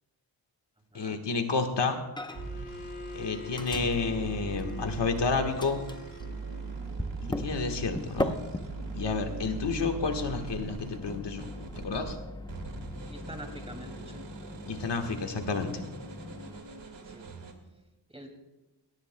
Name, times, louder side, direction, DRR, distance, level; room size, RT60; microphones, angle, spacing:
voice 1, 0.9-2.0 3.1-5.8 7.3-8.4 8.9-11.5 11.8-12.2 14.7-15.8, left 4 dB, 70° left, 5 dB, 1.4 m, -30 dB
Microwave oven, 2.2-2.7 2.9-5.2 5.6-16.6, left 1 dB, 10° left, 0.7 m, -40 dB
Bowed string instrument, 2.3-7.0, left 3 dB, 25° left, 2.1 m, -45 dB
sound 1, 2.3-12.1 12.5-17.5, right 4 dB, 75° right, 2.0 m, -41 dB
voice 2, 7.2-7.6 13.1-14.2 17.1-17.3 18.1-18.4, right 1 dB, 15° right, 3 dB, 2.5 m, -45 dB
21.5 x 17.5 x 2.2 m, 1.1 s
wide cardioid pair, 110°, 44 cm